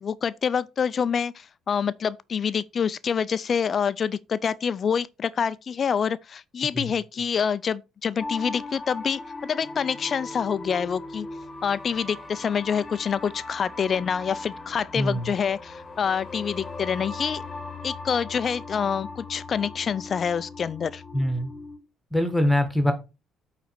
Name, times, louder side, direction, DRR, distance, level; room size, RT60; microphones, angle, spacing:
voice 1, 0.0-11.3 11.6-17.4 17.8-21.0, left 7 dB, 40° left, 0.4 m, -27 dB
sound 1, 8.2-21.8, left 3 dB, 25° left, 1.3 m, -39 dB
voice 2, 14.9-15.3 21.1-21.5 22.1-22.9, left 1 dB, 5° left, 1.6 m, -23 dB
9.2 x 4.1 x 4.7 m
cardioid pair, 110°, 0 cm